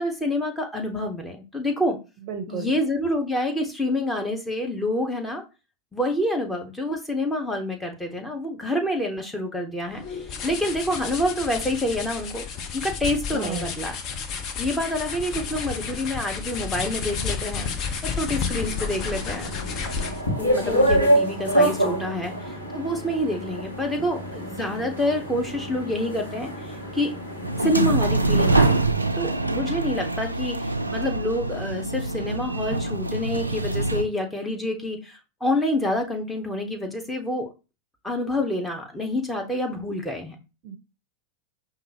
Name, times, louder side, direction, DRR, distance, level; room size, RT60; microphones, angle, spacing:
voice 1, 0.0-2.0 2.5-5.4 5.9-12.5 12.7-14.0 14.6-17.9 18.2-19.5 20.4-27.1 27.6-28.8 29.2-37.5 38.0-40.4, left 1 dB, 5° left, 2 dB, 0.9 m, -27 dB
voice 2, 2.2-2.8 13.3-13.8 40.6-40.8, right 5 dB, 40° right, 6 dB, 0.6 m, -33 dB
sound 1, 9.9-20.3, left 6 dB, 35° left, 0.6 m, -32 dB
sound 2, 18.5-28.9, right 1 dB, 85° left, 1.0 m, -27 dB
sound 3, 27.4-34.0, right 2 dB, 85° right, 0.3 m, -24 dB
5.2 x 2.4 x 2.8 m, 0.28 s
figure-of-eight pair, 90°, 0 cm